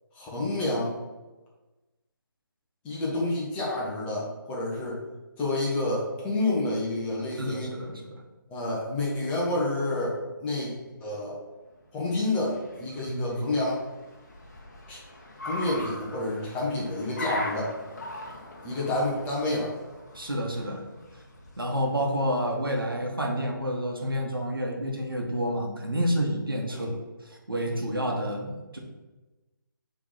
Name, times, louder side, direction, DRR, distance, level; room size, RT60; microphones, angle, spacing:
voice 1, 0.1-0.9 2.8-5.0 5.4-7.7 8.5-10.7 11.0-11.4 11.9-13.8 14.9-15.0 15.4-17.7 18.6-19.7 26.7-27.0, left 2 dB, 10° left, -5 dB, 1.1 m, -29 dB
voice 2, 7.4-8.2 13.1-13.4 20.1-20.8 21.6-26.9 27.2-28.8, equal, 80° right, 0 dB, 1.3 m, -29 dB
Car, 11.8-22.1, equal, 50° left, 1.1 m, -41 dB
4.9 x 3.5 x 5.6 m, 1.2 s
figure-of-eight pair, 145°, 12 cm